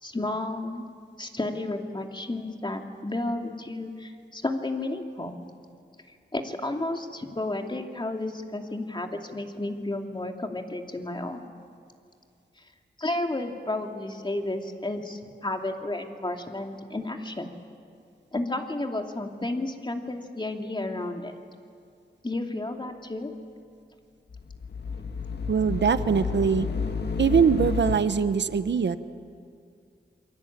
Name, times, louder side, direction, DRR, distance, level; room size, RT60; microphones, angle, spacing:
voice 1, 0.0-0.9 1.2-5.4 6.3-11.4 12.6-12.7 13.0-17.5 18.3-21.4 22.2-23.3, left 2 dB, 25° left, 3 dB, 2.7 m, -32 dB
sound 1, 24.3-28.0, left 5 dB, 70° left, 1.8 m, -30 dB
voice 2, 25.5-26.7 27.2-29.0, right 6 dB, 80° right, 12 dB, 1.0 m, -22 dB
28.0 x 23.5 x 8.9 m, 2.3 s
wide cardioid pair, 75°, 18 cm